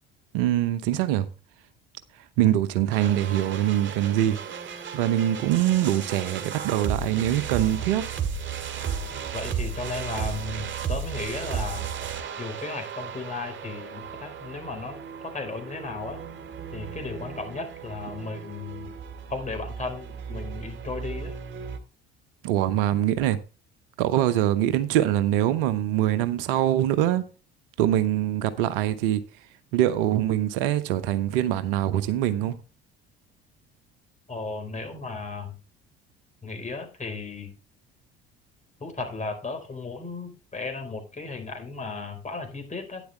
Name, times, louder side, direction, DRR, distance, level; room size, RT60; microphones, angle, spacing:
voice 1, 0.3-1.3 2.4-4.4 4.9-8.0 22.4-23.4 24.0-27.2 27.8-29.2 29.7-32.6, right 12 dB, 65° right, 0.9 m, -23 dB
sound 1, 2.9-21.8, right 7 dB, 40° right, 2.2 m, -35 dB
voice 2, 9.3-11.8 12.4-16.2 16.7-18.9 19.3-21.3 34.3-35.6 36.4-37.5 38.8-43.0, left 3 dB, 25° left, 4.4 m, -35 dB
11.5 x 10.0 x 3.3 m
figure-of-eight pair, 55°, 31 cm